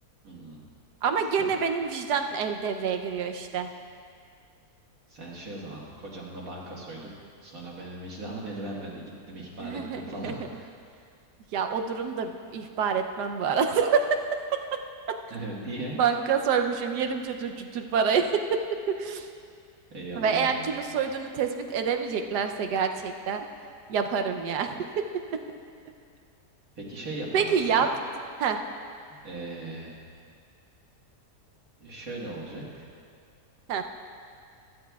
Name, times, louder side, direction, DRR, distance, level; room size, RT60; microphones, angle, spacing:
voice 1, 0.2-0.6 1.4-1.5 5.1-7.1 7.4-10.7 15.3-16.0 19.9-20.9 26.8-27.8 29.1-29.9 31.8-32.9, right 2 dB, 60° right, -4 dB, 2.0 m, -38 dB
voice 2, 1.0-3.7 9.6-10.4 11.5-14.2 14.5-14.8 15.1-15.2 15.9-19.3 20.2-23.5 23.9-24.9 27.3-27.9 28.4-28.6 33.7-33.8, right 6 dB, 80° right, 5 dB, 1.3 m, -27 dB
15.5 x 12.5 x 2.3 m, 2.3 s
omnidirectional pair, 1.7 m